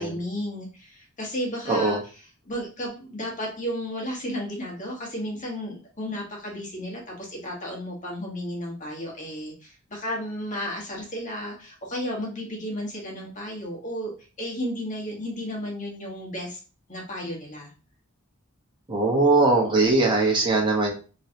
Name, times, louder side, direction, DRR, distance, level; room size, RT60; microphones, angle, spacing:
voice 1, 0.0-14.1 14.4-16.6 16.9-17.7, equal, 40° left, -2 dB, 1.5 m, -33 dB
voice 2, 1.7-2.0 18.9-20.9, right 3 dB, 25° right, -1 dB, 1.1 m, -21 dB
3.8 x 3.2 x 2.8 m, 0.36 s
head